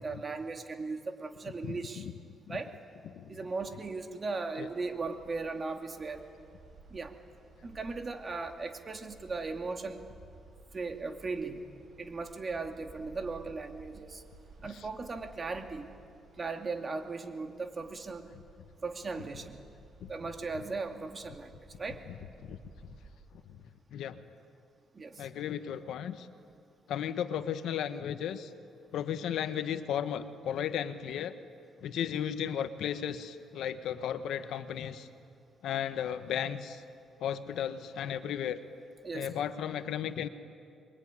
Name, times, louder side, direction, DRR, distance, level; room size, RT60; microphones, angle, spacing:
voice 1, 0.0-2.1 2.5-2.7 3.3-6.2 6.9-7.2 7.6-10.0 10.7-11.6 12.0-14.2 14.6-15.9 16.4-18.3 18.8-19.6 20.1-22.0 24.9-25.3 39.0-39.3, right 3 dB, 35° right, 5 dB, 2.6 m, -37 dB
voice 2, 1.6-2.1 3.1-3.3 4.6-4.7 14.7-14.8 20.0-20.1 22.4-22.6 23.5-23.6 23.9-24.2 25.2-26.3 26.9-28.5 28.9-31.3 31.8-35.1 35.6-36.8 37.2-38.6 39.1-40.3, left 9 dB, 80° left, 10 dB, 1.4 m, -35 dB
sound 1, 3.7-23.1, right 3 dB, 55° right, 7.2 m, -56 dB
26.5 x 22.5 x 9.9 m, 2.3 s
cardioid pair, 90°, 0 cm